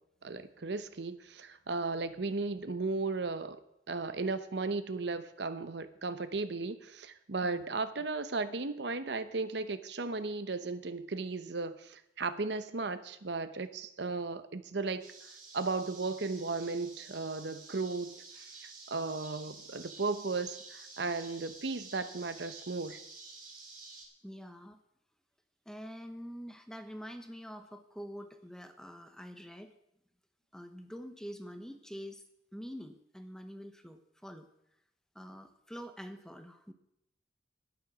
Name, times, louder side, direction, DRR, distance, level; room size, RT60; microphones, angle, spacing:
voice 1, 0.2-3.6 3.9-15.0 15.5-23.0, right 3 dB, 65° right, 12 dB, 0.8 m, -35 dB
sound 1, 15.0-24.0, right 4 dB, 45° right, 3.9 m, -51 dB
voice 2, 24.2-24.8 25.7-29.7 30.5-32.2 32.5-34.5 35.1-36.7, equal, 5° left, 8 dB, 0.8 m, -46 dB
12.5 x 9.3 x 6.1 m, 0.78 s
head